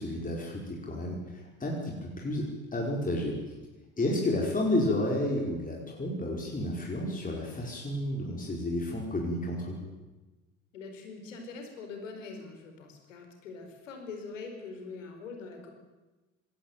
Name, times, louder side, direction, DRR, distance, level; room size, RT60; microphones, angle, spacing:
voice 1, 0.0-3.6 4.0-9.8, left 1 dB, 20° left, -1 dB, 5.2 m, -31 dB
voice 2, 10.7-15.7, left 4 dB, 75° left, 4 dB, 4.7 m, -43 dB
21.0 x 17.0 x 9.3 m, 1.2 s
figure-of-eight pair, 60°, 38 cm